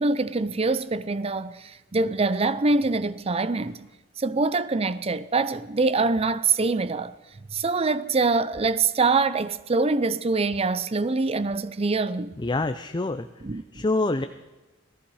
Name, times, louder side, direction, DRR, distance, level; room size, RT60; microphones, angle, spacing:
voice 1, 0.0-1.6 1.9-3.8 4.2-7.1 7.5-12.3 13.4-13.6, right 3 dB, 30° right, 0.6 m, -24 dB
voice 2, 12.4-13.3 13.7-14.3, left 2 dB, 25° left, 0.6 m, -26 dB
18.5 x 14.5 x 4.8 m
head